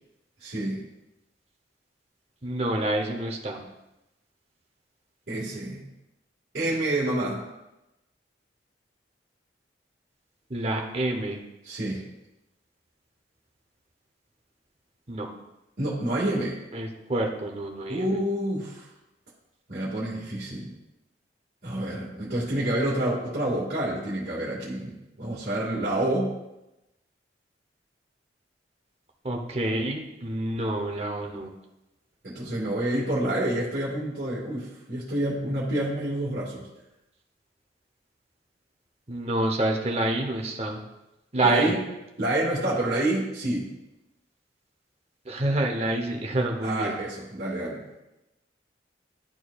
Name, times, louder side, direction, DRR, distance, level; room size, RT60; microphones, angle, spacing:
voice 1, 0.4-0.8 5.3-5.8 6.5-7.4 11.6-12.0 15.8-16.6 17.9-18.9 19.7-20.7 21.6-26.3 32.2-36.7 41.4-41.8 42.2-43.7 46.6-47.8, right 1 dB, 60° right, -10 dB, 1.8 m, -28 dB
voice 2, 2.4-3.6 10.5-11.4 15.1-15.3 16.7-18.1 29.2-31.5 39.1-40.8 41.3-41.7 45.2-46.9, right 2 dB, 35° right, 2 dB, 0.8 m, -27 dB
11.5 x 4.5 x 2.4 m, 0.94 s
head